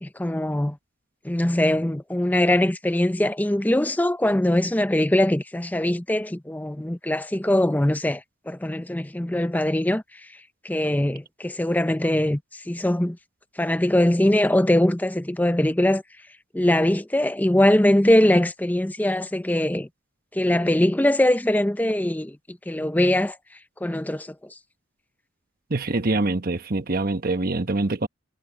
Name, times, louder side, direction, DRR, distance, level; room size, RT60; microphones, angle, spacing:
voice 1, 0.0-0.8 1.2-10.0 10.6-12.4 12.7-13.2 13.6-16.0 16.5-19.9 20.3-23.4 23.8-24.3, left 1 dB, 10° left, 0.6 m, -22 dB
voice 2, 25.7-28.1, right 2 dB, 50° right, 1.1 m, -24 dB
head